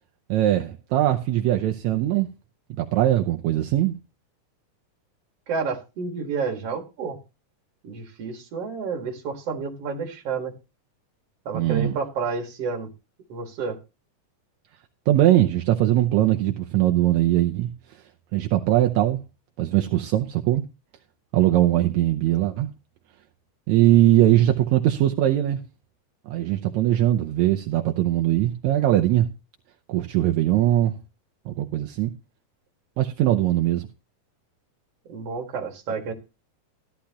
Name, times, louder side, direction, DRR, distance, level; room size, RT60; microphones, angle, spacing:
voice 1, 0.3-2.3 2.7-4.0 11.5-12.0 15.1-17.7 18.3-19.2 19.6-20.6 21.3-22.7 23.7-25.6 26.3-29.3 29.9-31.0 31.5-32.1 33.0-33.9, right 13 dB, 75° right, 2.0 m, -21 dB
voice 2, 5.5-7.2 7.8-10.5 11.5-12.9 13.3-13.8 35.1-36.1, right 5 dB, 55° right, 2.7 m, -30 dB
14.0 x 11.5 x 2.9 m
omnidirectional pair, 3.4 m